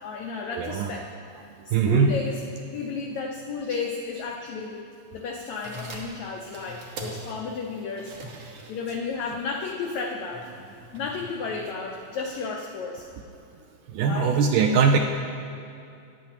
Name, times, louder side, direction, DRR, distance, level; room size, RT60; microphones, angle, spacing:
voice 1, 0.0-1.1 1.7-2.4 2.7-4.8 5.1-8.1 8.7-10.5 10.9-13.0 14.0-14.4, left 4 dB, 90° left, 1 dB, 1.6 m, -33 dB
voice 2, 0.6-0.9 1.7-2.1 13.9-15.0, right 6 dB, 80° right, 3 dB, 1.9 m, -21 dB
sound 1, 5.4-12.3, right 2 dB, 65° right, 1.5 m, -43 dB
14.0 x 10.5 x 2.9 m, 2.5 s
omnidirectional pair, 4.1 m